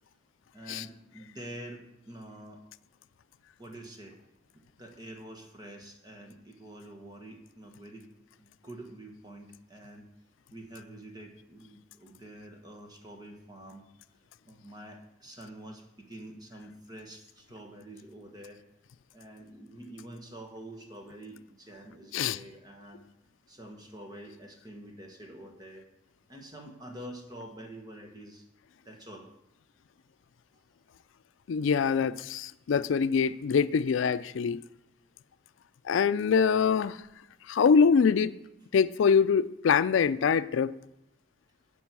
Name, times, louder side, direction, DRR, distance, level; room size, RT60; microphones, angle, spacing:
voice 1, 0.5-2.6 3.6-4.2 4.8-8.1 8.4-10.1 10.5-13.8 14.4-18.6 19.1-23.0 23.5-25.9 26.3-28.5 28.8-29.3, right 1 dB, 20° right, 3 dB, 1.4 m, -47 dB
voice 2, 31.5-34.6 35.8-37.0 37.5-38.3 38.7-40.7, left 6 dB, 80° left, 15 dB, 0.4 m, -24 dB
10.5 x 5.4 x 8.3 m, 0.86 s
head